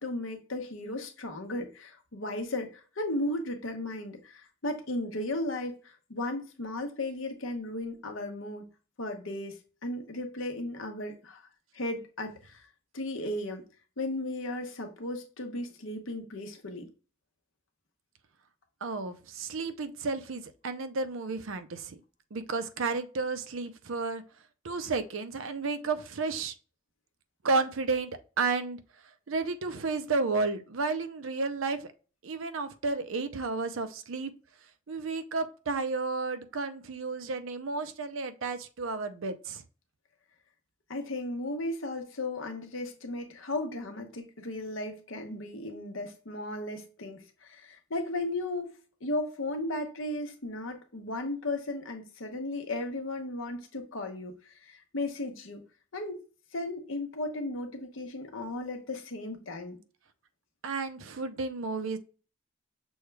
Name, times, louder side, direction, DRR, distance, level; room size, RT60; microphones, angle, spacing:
voice 1, 0.0-8.7 9.0-11.4 11.7-12.6 12.9-13.6 14.0-16.9 40.9-54.3 54.6-55.6 55.9-56.2 56.5-59.8, left 2 dB, 80° left, 1.0 m, -35 dB
voice 2, 18.8-22.0 22.3-24.2 24.6-26.5 27.4-28.8 29.3-31.9 32.2-34.3 34.9-39.6 60.6-62.0, right 3 dB, 85° right, 0.6 m, -32 dB
6.3 x 2.3 x 3.2 m
head